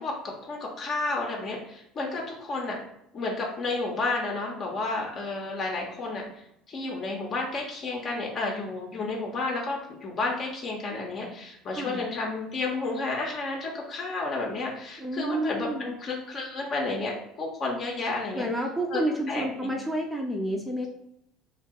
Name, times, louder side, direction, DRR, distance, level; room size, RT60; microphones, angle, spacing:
voice 1, 0.0-2.8 3.1-18.5 18.9-19.0 19.3-19.8, left 3 dB, 45° left, -1 dB, 0.7 m, -31 dB
voice 2, 11.8-12.1 15.0-15.9 18.3-20.9, right 1 dB, 5° right, 0 dB, 0.6 m, -30 dB
2.6 x 2.3 x 3.6 m, 0.78 s
hypercardioid pair, 65°, 0 cm